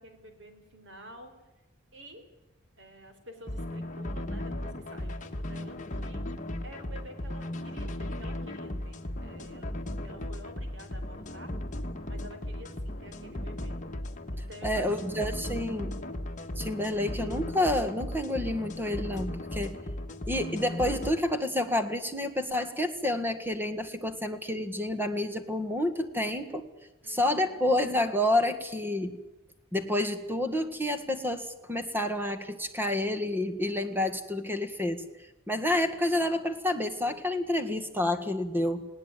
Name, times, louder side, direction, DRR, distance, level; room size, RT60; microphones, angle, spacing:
voice 1, 0.0-1.3 1.9-2.2 2.8-6.2 6.6-9.8 10.0-11.5 12.1-13.8 14.3-15.1 27.0-27.6, equal, 60° right, 7 dB, 4.6 m, -50 dB
sound 1, 3.5-21.1, left 1 dB, 35° left, 1.7 m, -36 dB
voice 2, 14.6-16.0 16.6-19.8 20.3-26.7 27.1-29.2 29.7-35.0 35.5-38.9, left 1 dB, 10° right, 7 dB, 1.7 m, -29 dB
20.5 x 18.0 x 9.3 m, 1.0 s
head